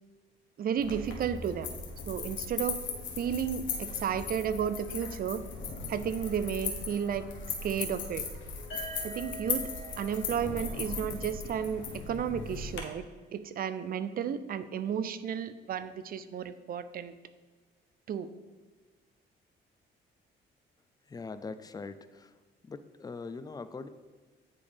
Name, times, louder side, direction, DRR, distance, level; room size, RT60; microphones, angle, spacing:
voice 1, 0.6-1.7 2.1-2.8 3.2-5.4 5.9-7.3 7.6-8.3 9.0-9.7 10.0-13.0 13.3-17.1 18.1-18.3, right 8 dB, 50° right, 13 dB, 0.4 m, -33 dB
sound 1, 0.8-12.8, left 5 dB, 75° left, 0.9 m, -38 dB
sound 2, 8.7-12.6, right 2 dB, 90° left, 1.5 m, -47 dB
voice 2, 21.1-22.3 22.7-23.9, left 4 dB, 20° left, 11 dB, 0.3 m, -41 dB
9.2 x 3.4 x 3.4 m, 1.3 s
cardioid pair, 90°, 20 cm